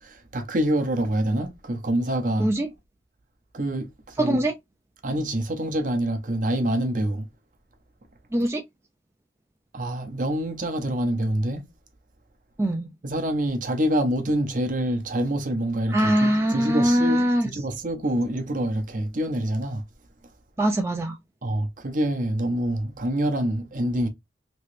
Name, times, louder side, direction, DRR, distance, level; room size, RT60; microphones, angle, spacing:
voice 1, 0.0-2.5 3.5-4.4 5.0-7.3 9.7-11.6 13.0-19.8 21.4-24.1, right 1 dB, 45° right, 0.7 m, -26 dB
voice 2, 4.2-4.5 8.3-8.6 12.6-12.9 15.9-17.5 20.6-21.2, right 1 dB, 15° right, 0.3 m, -22 dB
3.1 x 2.8 x 3.1 m
head